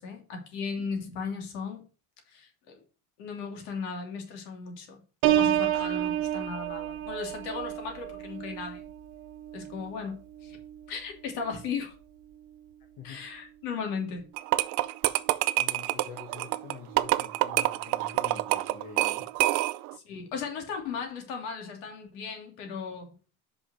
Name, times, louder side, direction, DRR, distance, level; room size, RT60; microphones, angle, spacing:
voice 1, 0.0-1.8 2.3-2.8 3.2-5.0 5.3-8.9 9.5-10.6 10.9-11.9 13.0-14.3 19.9-23.1, left 5 dB, 65° left, 3.0 m, -36 dB
Piano, 5.2-10.8 11.3-11.7, right 12 dB, 85° right, 1.2 m, -30 dB
sound 1, 14.4-19.9, right 18 dB, 45° right, 0.4 m, -27 dB
voice 2, 15.6-19.3, left 6 dB, 45° left, 1.8 m, -46 dB
5.8 x 5.6 x 6.4 m
cardioid pair, 170°, 42 cm